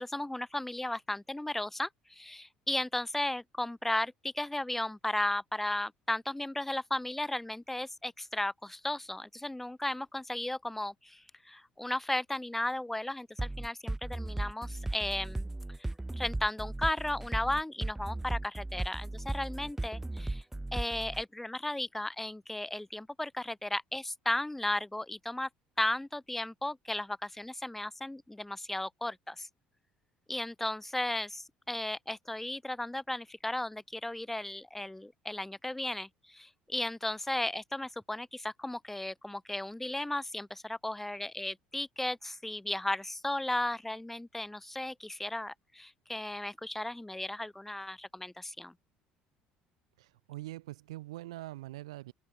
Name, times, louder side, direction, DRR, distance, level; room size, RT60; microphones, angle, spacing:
voice 1, 0.0-15.5 16.2-20.4 20.7-25.5 25.8-29.5 30.3-48.7, left 1 dB, 5° left, 0.6 m, -35 dB
sound 1, 13.4-21.2, right 2 dB, 10° right, 2.2 m, -36 dB
voice 2, 50.0-52.1, right 17 dB, 90° right, 4.0 m, -43 dB
open air
supercardioid pair, 75°, 3 cm